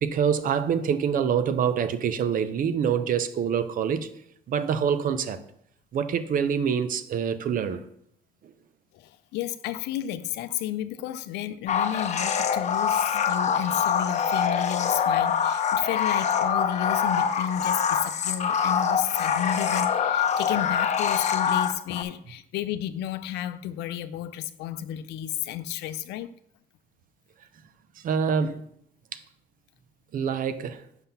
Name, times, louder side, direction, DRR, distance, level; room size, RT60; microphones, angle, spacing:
voice 1, 0.0-4.1 4.5-5.4 5.9-7.8 28.0-28.6 30.1-30.8, right 7 dB, 55° right, 0.7 m, -25 dB
voice 2, 8.9-26.3, left 11 dB, 85° left, 0.5 m, -32 dB
sound 1, 11.7-22.0, left 7 dB, 45° left, 0.7 m, -25 dB
5.8 x 5.7 x 5.6 m
cardioid pair, 110°, 17 cm